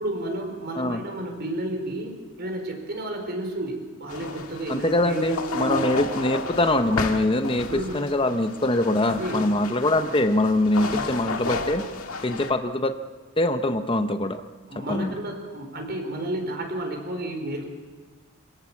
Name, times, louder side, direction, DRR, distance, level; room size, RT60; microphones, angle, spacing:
voice 1, 0.0-5.8 7.4-8.1 9.1-9.5 10.8-11.0 14.7-17.6, right 1 dB, 50° right, 4 dB, 4.3 m, -32 dB
sound 1, 4.1-12.5, left 4 dB, 80° left, 1.8 m, -33 dB
voice 2, 4.7-11.8 12.2-12.9 13.4-14.4 14.9-15.1, left 1 dB, 25° left, 8 dB, 0.9 m, -23 dB
27.0 x 17.0 x 7.2 m, 1.4 s
head